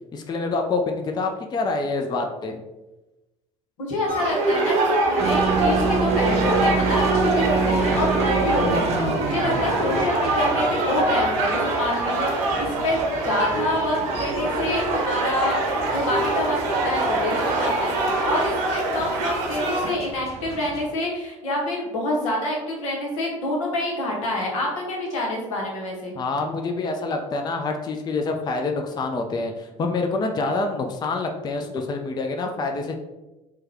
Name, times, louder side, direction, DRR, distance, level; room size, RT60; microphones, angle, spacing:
voice 1, 0.1-2.6 26.2-32.9, left 3 dB, 25° left, 3 dB, 0.4 m, -26 dB
voice 2, 3.8-15.6 15.9-26.2, left 1 dB, 80° left, -1 dB, 0.9 m, -27 dB
sound 1, 4.1-19.9, right 2 dB, 65° right, 0.8 m, -24 dB
sound 2, 5.2-20.9, right 4 dB, 40° right, 0.5 m, -29 dB
3.3 x 2.2 x 3.4 m, 1.0 s
hypercardioid pair, 65°, 17 cm